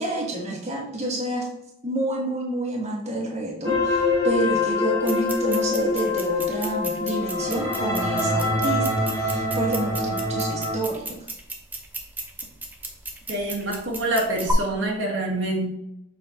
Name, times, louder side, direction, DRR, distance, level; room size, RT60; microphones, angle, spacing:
voice 1, 0.0-1.5 1.8-11.2, right 1 dB, 35° right, -3 dB, 1.3 m, -29 dB
sound 1, 3.6-10.7, left 2 dB, 15° left, 1.9 m, -24 dB
sound 2, 5.0-14.5, right 2 dB, 10° right, 0.8 m, -36 dB
voice 2, 13.3-15.7, right 1 dB, 80° right, -1 dB, 1.5 m, -26 dB
6.7 x 5.0 x 2.8 m, 0.80 s
head